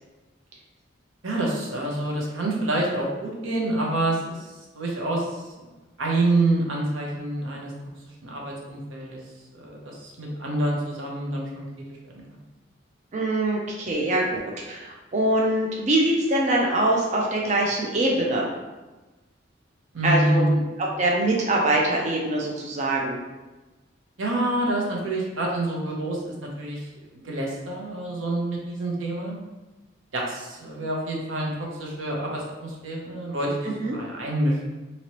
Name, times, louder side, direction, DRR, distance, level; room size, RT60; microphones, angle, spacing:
voice 1, 1.2-5.7 6.0-7.7 8.2-9.2 9.6-11.7 12.1-12.4 19.9-20.6 24.2-26.9 27.1-29.4 30.1-34.6, right 1 dB, 85° right, -2 dB, 0.8 m, -27 dB
voice 2, 13.1-14.4 14.7-18.5 20.0-20.5 21.0-23.2 33.6-34.0, right 1 dB, 35° right, -2 dB, 0.4 m, -23 dB
3.0 x 2.9 x 2.9 m, 1.1 s
head